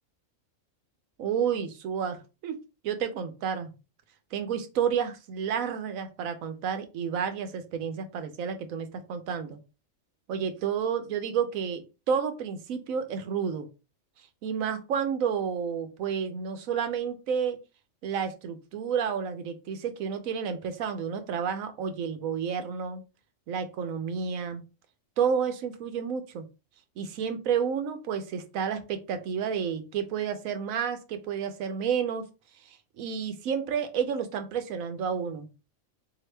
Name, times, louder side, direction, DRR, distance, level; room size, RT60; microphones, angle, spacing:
voice 1, 1.2-2.6 2.8-3.7 4.3-9.6 10.3-13.7 14.4-17.6 18.0-23.0 23.5-24.6 25.2-26.5 27.0-32.2 32.7-35.5, right 7 dB, 90° right, 8 dB, 1.1 m, -30 dB
4.1 x 2.8 x 3.2 m, 0.30 s
omnidirectional pair, 1.4 m